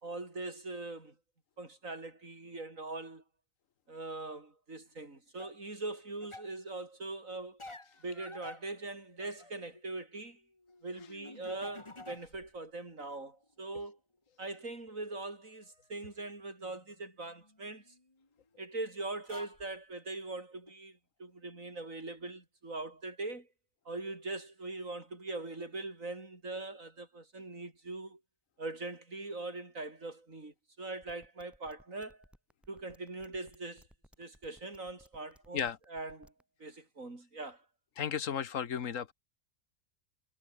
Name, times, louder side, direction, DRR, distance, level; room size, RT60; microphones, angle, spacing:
voice 1, 0.0-1.1 1.6-3.2 3.9-7.6 8.0-10.4 10.8-14.0 14.4-17.9 18.6-23.5 23.8-28.2 28.6-32.2 32.7-33.9 34.2-36.3 36.6-37.6, right 2 dB, 75° right, 5.0 m, -42 dB
sound 1, 5.4-5.6 6.2-6.5 7.6-9.9 10.2-12.6 12.9-13.8 15.0-15.1 16.6-18.3 18.9-19.0 19.2-19.7 20.7-20.8, left 2 dB, 20° left, 2.1 m, -52 dB
sound 2, 31.0-36.4, equal, ahead, 6.4 m, -61 dB
voice 2, 38.0-39.1, left 8 dB, 75° left, 1.5 m, -34 dB
omnidirectional pair, 1.4 m